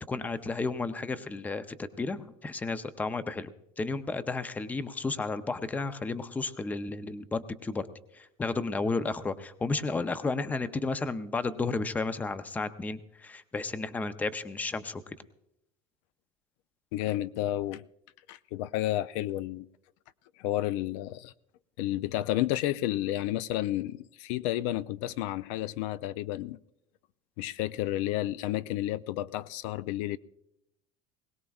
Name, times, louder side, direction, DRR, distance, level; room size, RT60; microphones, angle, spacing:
voice 1, 0.0-3.5 3.8-7.9 8.1-15.2, left 3 dB, 10° left, 0.5 m, -32 dB
voice 2, 16.9-17.8 18.3-19.7 20.4-21.3 21.8-26.6 27.4-30.2, left 15 dB, 70° left, 0.4 m, -31 dB
21.0 x 18.0 x 2.3 m
cardioid pair, 150°, 16 cm